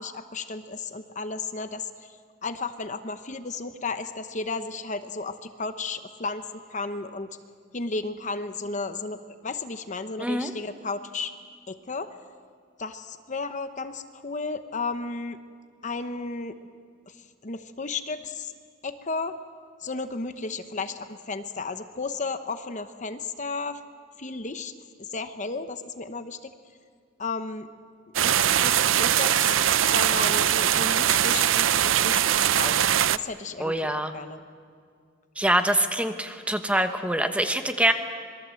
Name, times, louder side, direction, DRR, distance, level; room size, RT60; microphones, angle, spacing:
voice 1, 0.0-7.4 7.7-11.3 11.7-12.2 12.8-15.4 15.8-16.6 17.1-17.2 17.4-18.5 18.8-19.4 19.8-23.8 24.2-24.7 25.0-26.5 27.2-27.7 28.2-34.4, left 3 dB, 40° left, 9 dB, 1.0 m, -34 dB
voice 2, 10.2-10.5 33.6-34.1 35.4-37.9, right 1 dB, 5° right, 7 dB, 1.2 m, -24 dB
sound 1, 28.1-33.2, right 10 dB, 70° right, 0.6 m, -21 dB
26.0 x 22.0 x 7.7 m, 2.1 s
head